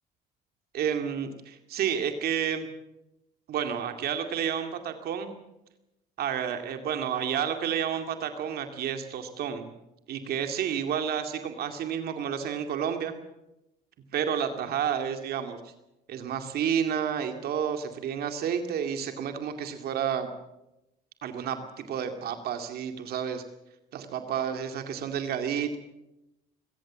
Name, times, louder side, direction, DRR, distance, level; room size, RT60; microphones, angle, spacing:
voice 1, 0.7-2.7 3.5-5.4 6.2-9.7 10.1-13.1 14.1-15.6 16.1-20.3 21.2-23.4 23.9-25.8, right 8 dB, 65° right, 6 dB, 2.3 m, -30 dB
22.0 x 18.0 x 7.4 m, 0.90 s
cardioid pair, 110°, 17 cm